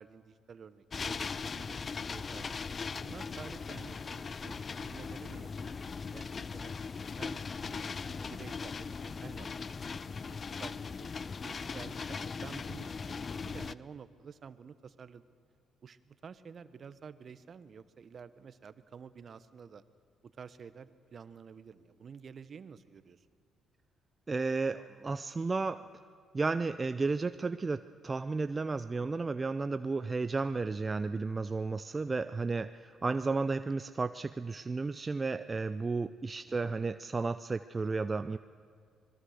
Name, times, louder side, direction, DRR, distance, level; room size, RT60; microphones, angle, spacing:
voice 1, 0.0-2.5 3.0-6.7 7.2-7.4 7.7-11.1 11.4-15.2 15.8-19.8 20.2-23.3 36.5-36.7, right 6 dB, 50° right, 13 dB, 1.1 m, -51 dB
sound 1, 0.9-13.7, left 5 dB, 45° left, 0.6 m, -39 dB
voice 2, 24.3-25.9 26.3-38.4, right 3 dB, 30° right, 11 dB, 0.6 m, -33 dB
25.5 x 21.0 x 6.6 m, 2.1 s
supercardioid pair, 55°, 0 cm